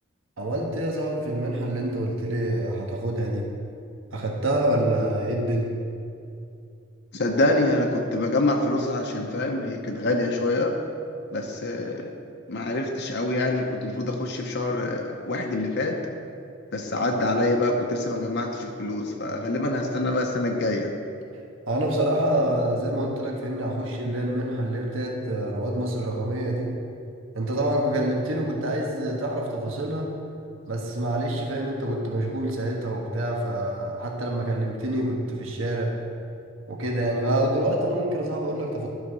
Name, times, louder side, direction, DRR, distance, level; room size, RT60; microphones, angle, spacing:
voice 1, 0.4-3.5 4.1-5.7 21.7-26.7 27.3-30.1 30.7-35.9 36.7-38.9, right 1 dB, 75° right, -1 dB, 1.4 m, -26 dB
voice 2, 7.1-10.8 11.3-12.1 12.5-16.0 16.7-20.9, left 2 dB, 55° left, 2 dB, 0.8 m, -25 dB
11.5 x 4.9 x 6.2 m, 2.6 s
head